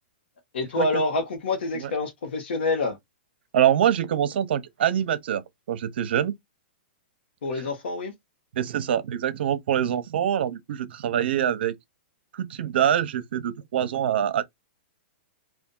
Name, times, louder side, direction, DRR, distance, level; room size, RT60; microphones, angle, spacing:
voice 1, 0.5-3.0 7.4-8.1, left 3 dB, 75° left, 1.0 m, -27 dB
voice 2, 3.5-5.4 5.7-6.3 7.5-7.6 8.5-11.7 12.3-14.4, right 10 dB, 60° right, 0.7 m, -24 dB
2.7 x 2.5 x 3.7 m
hypercardioid pair, 155°, 6 cm